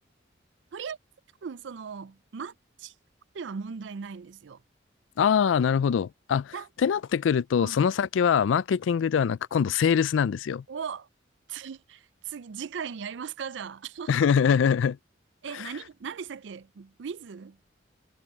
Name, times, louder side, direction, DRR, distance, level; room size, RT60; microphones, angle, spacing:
voice 1, 1.4-2.5 2.8-2.9 3.3-4.6 6.5-6.7 7.6-7.9 10.7-11.1 11.5-14.3 15.4-17.6, right 6 dB, 70° right, 0.4 m, -38 dB
voice 2, 5.2-10.6 14.1-15.0 15.5-15.7, left 7 dB, 85° left, 0.3 m, -23 dB
head